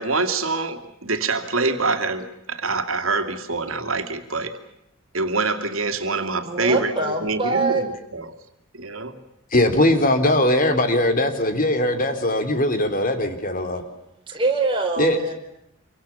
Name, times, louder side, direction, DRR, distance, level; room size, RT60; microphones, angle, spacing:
voice 1, 0.0-4.6 5.1-8.3 8.7-9.1, right 3 dB, 75° right, 7 dB, 2.6 m, -25 dB
voice 2, 6.4-7.8 14.3-15.3, right 3 dB, 25° right, 2 dB, 5.1 m, -23 dB
voice 3, 9.5-13.8 15.0-15.2, left 1 dB, 40° left, 7 dB, 3.3 m, -20 dB
27.5 x 25.0 x 7.2 m, 0.79 s
head